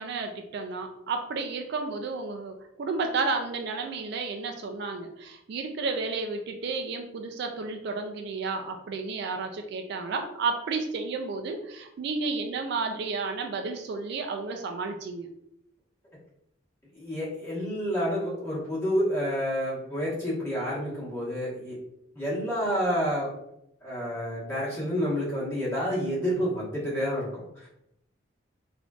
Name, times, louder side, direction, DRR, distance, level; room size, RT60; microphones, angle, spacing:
voice 1, 0.0-15.3, right 4 dB, 55° right, 4 dB, 0.3 m, -32 dB
voice 2, 16.9-21.8 22.1-23.3 23.8-27.3, equal, 15° left, -8 dB, 1.2 m, -29 dB
3.6 x 2.5 x 2.3 m, 0.79 s
head